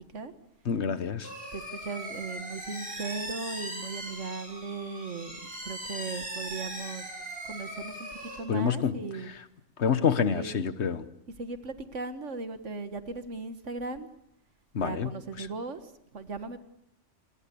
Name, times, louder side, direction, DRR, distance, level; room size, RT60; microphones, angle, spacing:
voice 1, 0.6-1.3 8.5-8.9 9.8-11.0 14.7-15.1 15.4-15.5, left 7 dB, 65° left, 13 dB, 1.4 m, -27 dB
sound 1, 1.2-8.4, right 1 dB, 45° right, 7.7 m, -39 dB
voice 2, 1.5-7.0 7.5-9.3 10.2-10.6 11.4-14.1 14.8-16.6, right 3 dB, 75° right, 10 dB, 1.9 m, -37 dB
28.5 x 21.5 x 7.0 m, 0.77 s
omnidirectional pair, 1.3 m